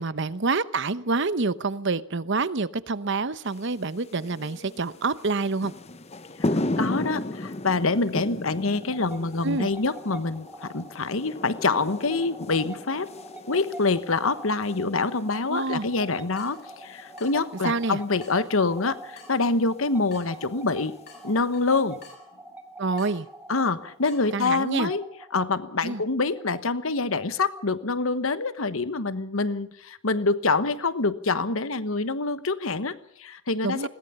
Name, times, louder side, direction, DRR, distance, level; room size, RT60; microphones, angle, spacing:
voice 1, 0.0-5.7 9.4-9.7 15.5-15.9 17.6-18.0 22.8-23.3 24.3-24.9 25.8-26.0 33.6-33.9, right 3 dB, 60° right, 15 dB, 0.9 m, -27 dB
sound 1, 3.4-22.1, left 1 dB, 30° left, 0.9 m, -37 dB
voice 2, 6.4-13.1 13.5-20.9 21.2-22.0 23.5-25.0 25.3-33.9, left 3 dB, 75° left, 13 dB, 1.2 m, -26 dB
sound 2, 8.6-28.0, right 2 dB, 5° right, 2.2 m, -45 dB
Water tap faucet / Drip, 15.7-24.3, left 3 dB, 50° left, 7.6 m, -52 dB
21.0 x 18.5 x 7.0 m, 0.65 s
head